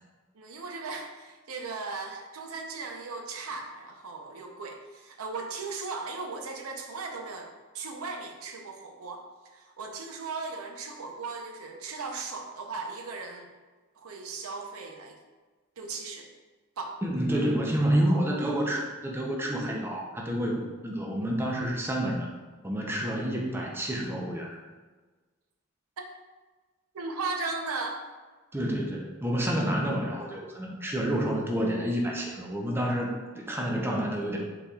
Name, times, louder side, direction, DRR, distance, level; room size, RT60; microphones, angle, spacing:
voice 1, 0.3-9.2 9.5-13.5 13.9-15.2 15.8-16.3 16.8-16.9 26.9-28.0, right 4 dB, 85° right, 3 dB, 0.6 m, -37 dB
voice 2, 17.0-22.3 22.6-24.6 28.5-34.4, equal, 10° right, -1 dB, 0.5 m, -29 dB
5.4 x 4.1 x 2.3 m, 1.3 s
head